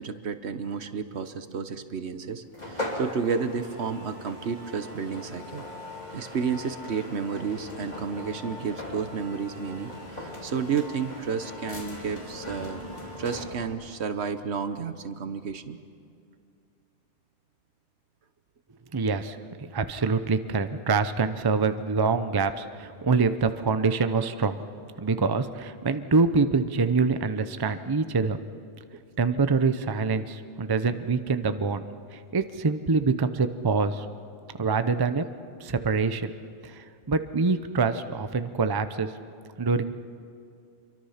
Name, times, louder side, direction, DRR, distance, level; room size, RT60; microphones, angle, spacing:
voice 1, 0.0-5.6 6.1-12.8 13.2-15.8, right 6 dB, 70° right, 10 dB, 1.3 m, -31 dB
sound 1, 2.5-13.8, left 1 dB, 35° left, 3.2 m, -39 dB
voice 2, 18.9-24.6 25.0-28.4 29.2-31.8 32.1-34.0 34.6-35.2 35.6-36.3 36.6-39.1 39.6-39.9, right 4 dB, 25° right, 10 dB, 0.6 m, -25 dB
26.5 x 23.5 x 5.8 m, 2.4 s
omnidirectional pair, 1.2 m